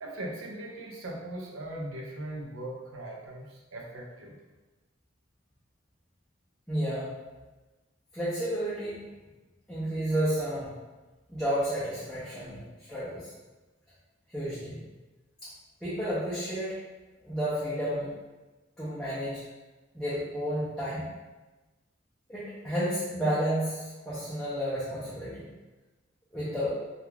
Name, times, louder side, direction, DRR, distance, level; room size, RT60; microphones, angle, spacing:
voice 1, 0.0-4.4, right 1 dB, 85° right, 0 dB, 0.5 m, -39 dB
voice 2, 6.7-7.1 8.1-9.1 9.7-10.7 11.3-12.6 12.9-13.3 14.3-14.8 15.4-15.5 15.8-16.8 17.2-18.2 18.8-19.4 19.9-21.1 22.3-25.5 26.3-26.7, equal, 5° left, -12 dB, 0.5 m, -31 dB
2.3 x 2.2 x 3.1 m, 1.2 s
head